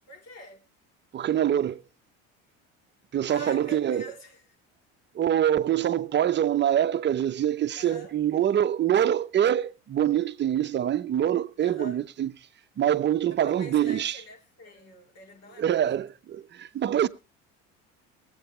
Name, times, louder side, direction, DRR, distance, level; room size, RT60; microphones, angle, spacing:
voice 1, 0.1-0.6 3.3-4.4 7.7-8.1 11.6-12.0 13.3-16.0, left 1 dB, 55° left, 3.0 m, -45 dB
voice 2, 1.1-1.8 3.1-4.0 5.1-12.3 12.8-14.2 15.6-17.1, right 10 dB, 35° right, 0.7 m, -25 dB
19.0 x 8.0 x 4.3 m
supercardioid pair, 90°, 32 cm